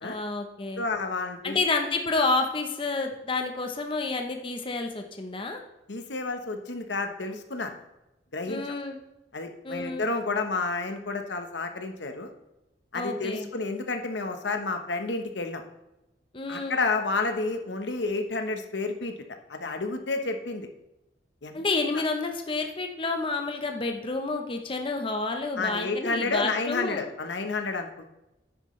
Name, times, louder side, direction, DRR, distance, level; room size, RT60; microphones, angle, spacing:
voice 1, 0.0-0.8 1.4-5.6 8.5-9.0 9.6-10.0 12.9-13.5 16.3-16.8 21.5-27.0, left 3 dB, 30° left, 4 dB, 0.8 m, -29 dB
voice 2, 0.8-1.6 5.9-7.7 8.3-8.6 9.3-12.3 12.9-15.6 16.5-20.7 21.4-21.6 25.6-28.1, left 3 dB, 85° left, 5 dB, 1.1 m, -30 dB
9.8 x 9.1 x 3.2 m, 0.92 s
head